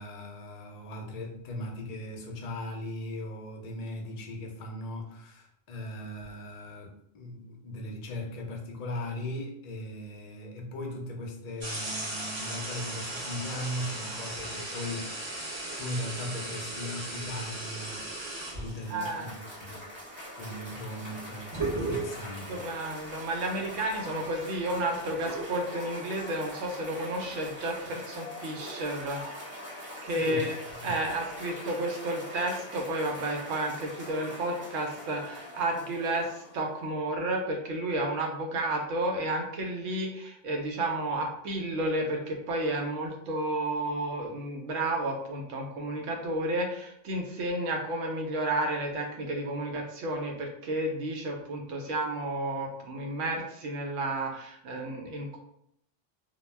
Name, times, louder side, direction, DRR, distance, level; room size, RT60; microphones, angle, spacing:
voice 1, 0.0-15.4 15.8-19.9 20.4-22.7 30.0-30.5 30.8-31.0, left 1 dB, 60° left, 1 dB, 0.4 m, -38 dB
sound 1, 11.6-19.0 21.1-21.2 21.5-22.4 23.0-23.2 23.6-25.6, right 2 dB, 35° right, 0.5 m, -36 dB
Cheering / Applause, 18.2-36.8, left 1 dB, 10° right, 0.8 m, -43 dB
voice 2, 18.9-19.3 22.5-29.2 30.0-30.6 30.8-55.4, right 1 dB, 90° right, 2 dB, 0.9 m, -31 dB
2.2 x 2.0 x 3.2 m, 0.74 s
omnidirectional pair, 1.2 m